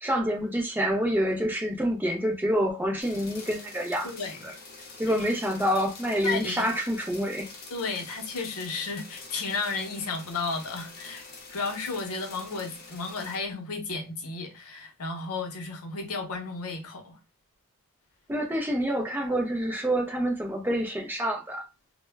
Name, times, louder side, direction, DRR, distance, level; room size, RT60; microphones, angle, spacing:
voice 1, 0.0-4.1 5.0-7.5 18.3-21.6, equal, 10° right, 0.4 m, -27 dB
sound 1, 3.0-13.4, left 3 dB, 45° left, 0.6 m, -46 dB
voice 2, 4.0-4.5 5.1-5.2 6.2-6.7 7.7-11.2 11.5-17.2, left 3 dB, 85° left, 0.6 m, -33 dB
2.0 x 2.0 x 3.3 m
head